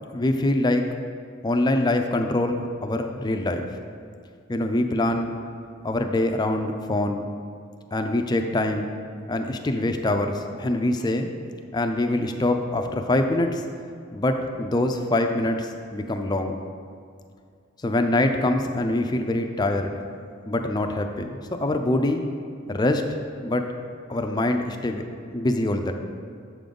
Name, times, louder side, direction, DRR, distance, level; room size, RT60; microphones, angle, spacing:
voice 1, 0.1-0.8 1.4-3.7 4.5-5.3 5.8-7.3 7.9-8.9 9.3-11.3 11.7-13.6 14.1-16.6 17.8-19.9 20.5-22.2 22.7-23.0 23.4-23.7 24.1-25.0 25.3-25.9, left 1 dB, 20° left, 5 dB, 0.4 m, -24 dB
7.6 x 3.8 x 5.2 m, 2.2 s
head